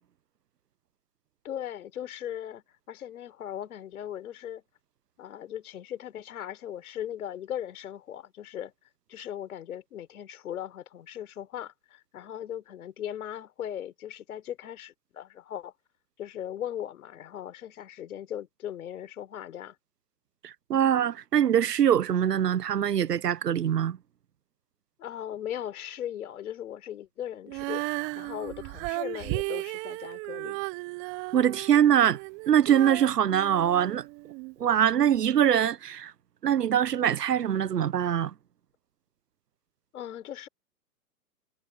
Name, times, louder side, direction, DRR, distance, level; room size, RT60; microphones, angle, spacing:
voice 1, 1.4-4.6 5.2-8.7 9.1-15.7 16.2-19.8 25.0-27.9 28.1-30.6 39.9-40.5, left 10 dB, 65° left, 4.3 m, -38 dB
voice 2, 20.4-24.0 31.3-32.2 32.5-34.0 34.6-36.1 36.4-38.3, right 9 dB, 85° right, 1.0 m, -23 dB
Female singing, 27.5-34.5 35.1-35.2, right 27 dB, 30° right, 0.9 m, -35 dB
hypercardioid pair, 125°, 47 cm